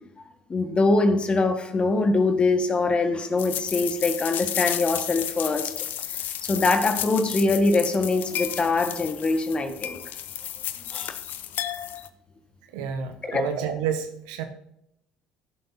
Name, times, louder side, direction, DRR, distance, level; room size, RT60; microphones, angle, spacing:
voice 1, 0.5-5.7 6.4-10.0 10.9-11.1 13.3-13.5, left 3 dB, 30° left, 7 dB, 1.5 m, -23 dB
sound 1, 3.4-12.1, left 11 dB, 60° left, 0.8 m, -32 dB
voice 2, 12.7-14.4, right 7 dB, 80° right, 6 dB, 1.1 m, -29 dB
15.5 x 7.7 x 2.7 m, 0.77 s
hypercardioid pair, 70°, 4 cm